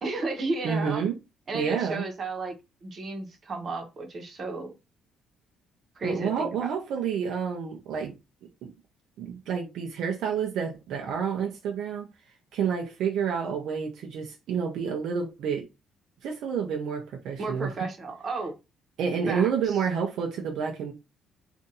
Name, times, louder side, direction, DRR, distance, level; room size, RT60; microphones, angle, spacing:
voice 1, 0.0-1.0 1.5-2.5 2.8-4.7 6.0-6.7 17.4-18.6 19.3-19.8, right 3 dB, 40° right, 1.0 m, -33 dB
voice 2, 0.6-1.1 1.5-2.0 6.0-8.1 8.6-8.7 9.2-12.1 12.5-15.6 16.2-17.7 19.0-20.9, right 6 dB, 75° right, 0.7 m, -29 dB
2.7 x 2.5 x 3.9 m
cardioid pair, 125°, 0 cm